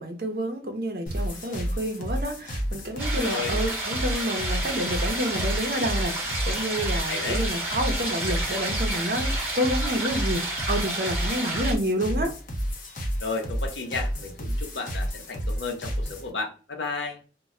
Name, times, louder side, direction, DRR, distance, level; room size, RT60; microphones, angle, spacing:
voice 1, 0.0-12.3, equal, 55° right, 0.6 m, -29 dB
sound 1, 1.1-16.3, equal, 45° left, 0.6 m, -31 dB
sound 2, 3.0-11.7, right 1 dB, 10° right, 0.8 m, -31 dB
voice 2, 3.1-3.6 7.1-7.4 13.2-17.2, left 4 dB, 85° left, 0.6 m, -33 dB
2.2 x 2.1 x 3.6 m
head